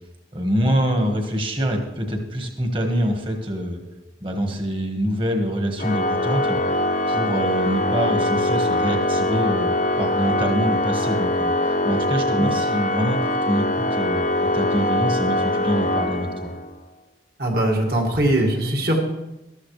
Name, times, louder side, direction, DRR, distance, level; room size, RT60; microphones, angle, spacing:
voice 1, 0.3-3.8 4.2-6.8 7.1-14.3 14.5-16.5, equal, 30° right, 3 dB, 1.4 m, -25 dB
Organ, 5.8-16.7, left 1 dB, 45° left, 0.6 m, -23 dB
voice 2, 17.4-19.0, right 1 dB, 60° right, 0 dB, 2.0 m, -21 dB
14.0 x 12.5 x 3.3 m, 0.94 s
head